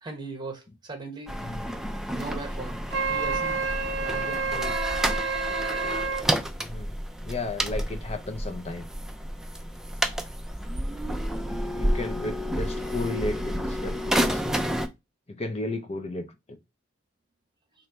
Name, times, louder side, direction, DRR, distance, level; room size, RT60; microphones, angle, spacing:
voice 1, 0.0-1.3 2.1-2.8 3.1-4.8, right 3 dB, 20° right, 1.1 m, -39 dB
sound 1, 1.3-14.9, equal, 5° right, 0.4 m, -30 dB
Wind instrument woodwind instrument, 2.9-6.3, right 4 dB, 65° right, 0.5 m, -29 dB
voice 2, 6.6-6.9 7.2-8.9 11.7-14.4 15.3-16.3, left 2 dB, 30° left, 0.7 m, -33 dB
3.2 x 2.7 x 4.2 m
head